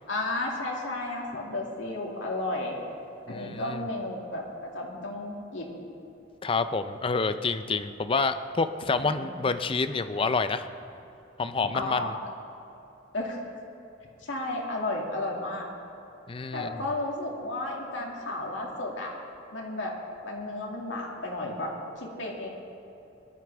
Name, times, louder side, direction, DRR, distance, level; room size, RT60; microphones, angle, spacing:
voice 1, 0.1-2.8 3.3-5.7 9.0-9.4 11.7-12.1 13.1-13.4 14.2-15.7 16.5-19.2 19.5-19.9 20.2-22.5, left 2 dB, 75° left, -1 dB, 2.3 m, -33 dB
voice 2, 3.3-3.8 6.4-10.7 11.4-12.1 16.3-16.7, left 4 dB, 30° left, 10 dB, 0.5 m, -28 dB
20.0 x 12.5 x 3.5 m, 2.8 s
head